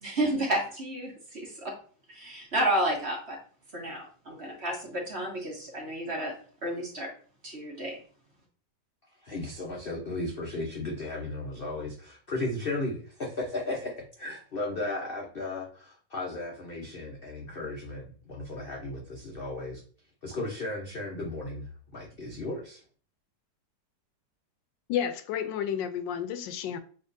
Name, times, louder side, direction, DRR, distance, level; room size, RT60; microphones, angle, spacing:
voice 1, 0.0-1.7 2.1-3.4 3.7-6.3 6.6-7.1 7.4-8.0, right 1 dB, 40° right, 1.2 m, -31 dB
voice 2, 9.2-19.8 20.2-22.8, left 2 dB, 55° left, 0.6 m, -35 dB
voice 3, 24.9-26.8, left 9 dB, 85° left, 1.3 m, -31 dB
6.7 x 2.9 x 2.6 m
omnidirectional pair, 1.9 m